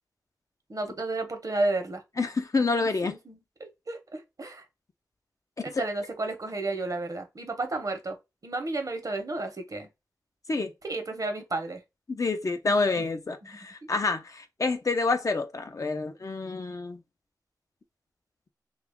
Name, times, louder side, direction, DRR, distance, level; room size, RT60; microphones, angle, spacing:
voice 1, 0.7-2.0 3.0-4.6 5.6-8.2 8.4-9.9 10.8-11.8 13.0-13.1 13.4-13.5, right 2 dB, 55° right, 0.8 m, -32 dB
voice 2, 2.2-3.1 10.5-10.7 12.1-17.0, left 3 dB, 50° left, 0.5 m, -28 dB
2.9 x 2.3 x 3.5 m
cardioid pair, 40°, 7 cm